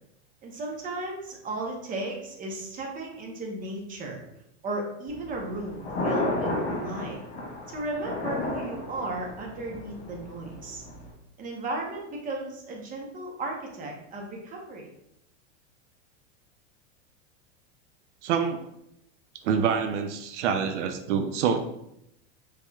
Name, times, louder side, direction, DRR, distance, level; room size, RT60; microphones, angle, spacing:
voice 1, 0.4-4.2 4.6-7.2 7.7-10.8 11.4-14.9, right 2 dB, 25° right, 0 dB, 0.8 m, -35 dB
Thunder, 5.1-11.1, left 2 dB, 40° left, 1.4 m, -33 dB
voice 2, 18.2-18.7 19.4-21.6, right 7 dB, 80° right, 7 dB, 0.5 m, -26 dB
4.2 x 3.3 x 2.3 m, 0.80 s
supercardioid pair, 135°, 35 cm